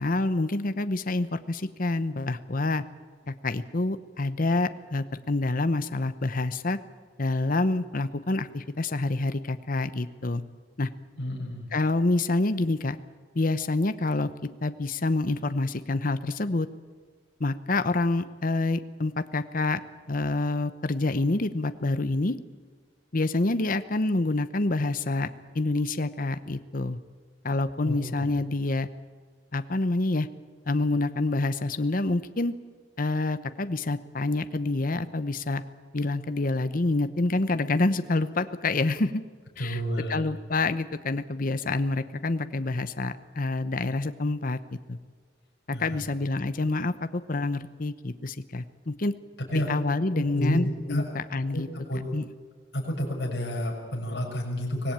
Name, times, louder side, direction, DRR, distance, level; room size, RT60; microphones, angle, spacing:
voice 1, 0.0-2.8 3.3-6.8 7.2-10.4 10.8-10.9 11.7-13.0 13.3-16.7 17.4-19.8 20.1-22.4 23.1-25.3 25.5-27.0 27.4-28.9 29.5-30.3 30.7-32.5 33.0-35.6 35.9-39.2 39.6-39.8 40.1-44.6 44.9-45.0 45.7-49.1 49.5-51.7 52.1-52.2, left 2 dB, 50° left, 11 dB, 0.9 m, -27 dB
voice 2, 11.2-11.7 27.8-28.3 39.6-40.2 45.7-46.0 49.5-49.7 50.1-50.6 50.9-51.0 51.5-51.6 51.9-52.0 52.7-54.9, equal, 65° left, -1 dB, 6.6 m, -30 dB
24.5 x 18.5 x 8.9 m, 1.5 s
head